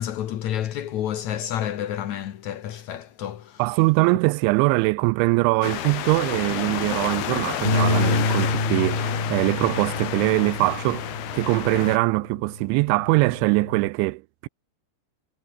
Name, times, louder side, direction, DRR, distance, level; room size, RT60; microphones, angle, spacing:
voice 1, 0.0-3.6, left 11 dB, 80° left, 1.6 m, -29 dB
voice 2, 3.6-14.5, right 24 dB, 85° right, 2.9 m, -22 dB
sound 1, 5.6-12.0, left 11 dB, 65° left, 3.6 m, -30 dB
Bass guitar, 7.6-12.1 12.5-13.9, left 3 dB, 15° left, 2.1 m, -28 dB
omnidirectional pair, 5.4 m